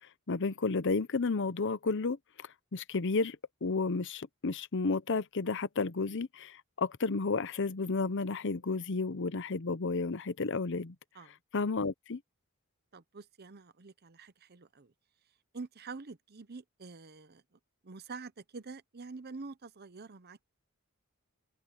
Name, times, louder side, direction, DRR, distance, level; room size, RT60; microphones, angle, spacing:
voice 1, 0.3-3.4 3.6-11.0 11.5-12.2, left 4 dB, 55° left, 0.7 m, -32 dB
voice 2, 12.9-14.9 15.5-20.4, right 4 dB, 45° right, 0.8 m, -47 dB
open air
head